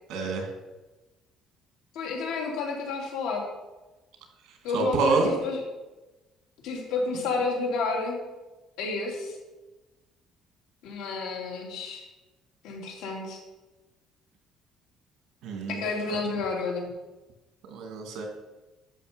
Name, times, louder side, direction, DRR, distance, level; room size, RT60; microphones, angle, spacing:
voice 1, 0.1-0.5 4.7-5.3 15.4-15.8 17.7-18.3, right 3 dB, 70° right, 3 dB, 2.4 m, -26 dB
voice 2, 1.9-3.4 4.6-5.6 6.6-8.2 8.8-9.4 10.8-12.0 12.6-13.4 15.7-16.9, left 3 dB, 80° left, 0 dB, 2.9 m, -30 dB
12.0 x 6.4 x 5.3 m, 1.1 s
cardioid pair, 165°, 0 cm